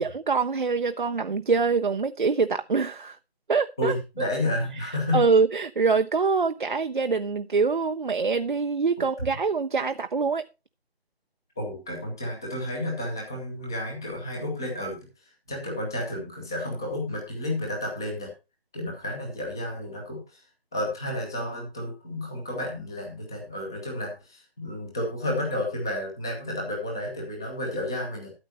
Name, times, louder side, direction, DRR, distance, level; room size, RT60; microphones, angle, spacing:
voice 1, 0.0-3.2 3.5-4.0 4.8-10.5, right 4 dB, 50° right, 0.7 m, -24 dB
voice 2, 3.8-5.2 11.6-18.3 18.7-20.4 20.7-28.3, left 1 dB, 5° left, 0.8 m, -31 dB
13.0 x 7.3 x 4.1 m
figure-of-eight pair, 160°, 31 cm